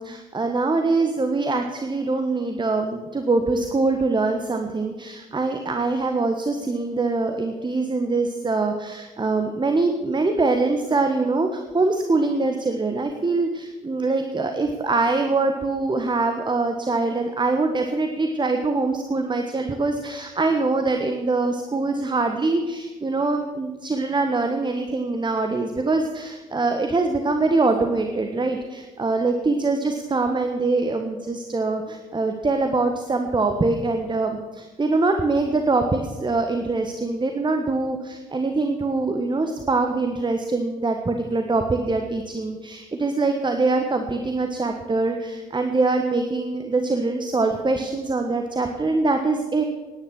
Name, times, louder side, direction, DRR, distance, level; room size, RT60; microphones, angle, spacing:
voice 1, 0.0-49.6, right 3 dB, 25° right, 5 dB, 1.4 m, -23 dB
17.5 x 10.5 x 6.3 m, 1.3 s
figure-of-eight pair, 40°, 19 cm